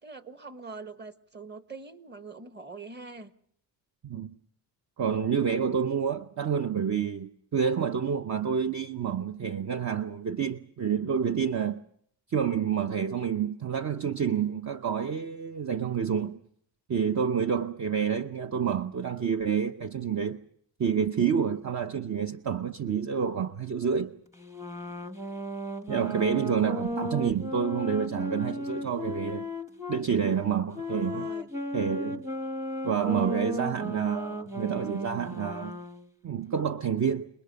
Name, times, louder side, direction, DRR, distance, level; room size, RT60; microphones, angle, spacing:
voice 1, 0.0-3.3 30.7-31.5, right 4 dB, 25° right, 1.5 m, -43 dB
voice 2, 4.0-4.3 5.0-11.8 12.3-16.4 16.9-20.4 20.8-24.2 25.9-29.5 29.9-31.3 31.7-32.3 32.8-35.8 36.2-37.3, right 7 dB, 40° right, 0.9 m, -28 dB
sound 1, 24.4-30.1 30.7-36.1, left 1 dB, 5° right, 1.2 m, -35 dB
28.0 x 20.5 x 6.9 m
cardioid pair, 90°, 42 cm